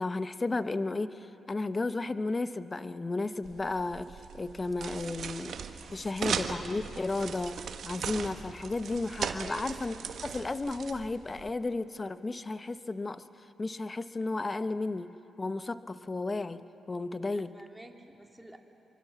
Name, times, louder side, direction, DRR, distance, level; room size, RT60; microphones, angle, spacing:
voice 1, 0.0-5.6 5.9-10.0 10.2-15.1 15.4-17.6, left 3 dB, 30° left, 12 dB, 1.0 m, -33 dB
sound 1, 3.4-11.5, right 7 dB, 70° right, 1.3 m, -38 dB
voice 2, 6.0-6.6 9.4-9.6 17.3-18.6, right 1 dB, 10° right, 2 dB, 3.1 m, -49 dB
25.5 x 24.0 x 7.1 m, 3.0 s
supercardioid pair, 50°, 0 cm